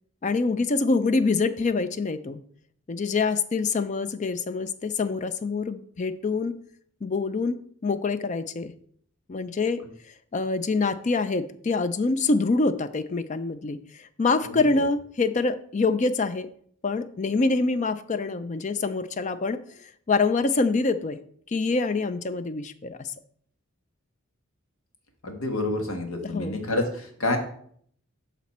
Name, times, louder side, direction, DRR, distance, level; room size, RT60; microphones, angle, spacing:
voice 1, 0.2-2.4 2.9-6.6 7.0-7.6 7.8-8.7 9.3-9.8 10.3-16.5 16.8-21.2 21.5-23.1 26.2-26.6, left 3 dB, 35° left, 12 dB, 0.4 m, -25 dB
voice 2, 25.2-27.4, left 2 dB, 85° left, 4 dB, 1.6 m, -28 dB
11.5 x 4.1 x 4.2 m, 0.62 s
head